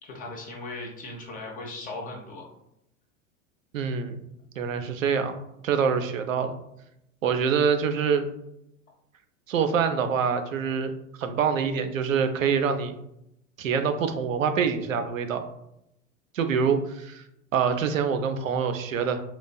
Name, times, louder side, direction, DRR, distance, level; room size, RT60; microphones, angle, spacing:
voice 1, 0.0-2.5, left 2 dB, 20° left, -1 dB, 0.5 m, -38 dB
voice 2, 3.7-4.2 4.6-5.4 5.6-6.5 7.2-8.3 9.5-13.0 13.6-15.4 16.3-17.2 17.5-19.2, right 6 dB, 75° right, 8 dB, 0.5 m, -25 dB
3.9 x 2.5 x 2.2 m, 0.80 s
figure-of-eight pair, 85°, 40 cm